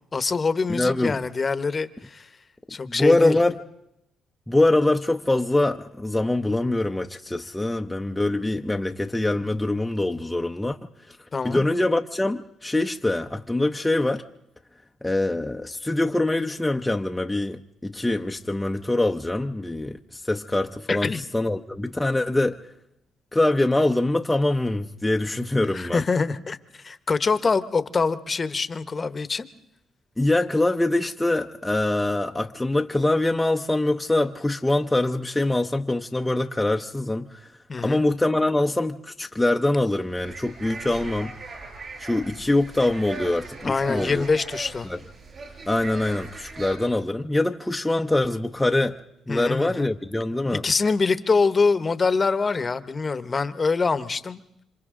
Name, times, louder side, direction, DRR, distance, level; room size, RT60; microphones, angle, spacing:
voice 1, 0.1-2.3 2.7-3.4 11.3-11.7 20.9-21.2 25.7-29.5 37.7-38.0 43.6-44.9 49.3-49.9 50.5-54.4, left 4 dB, 35° left, 1.0 m, -24 dB
voice 2, 0.7-1.2 2.9-3.6 4.5-10.8 11.1-11.2 11.4-14.2 15.0-22.6 23.3-26.0 30.2-37.5 37.8-41.3 42.0-44.2 44.8-45.0 45.7-49.0 49.3-50.6, left 2 dB, 10° left, 0.7 m, -24 dB
sound 1, 40.0-46.8, right 3 dB, 45° right, 7.4 m, -39 dB
28.5 x 26.0 x 3.8 m
cardioid pair, 90°, 0 cm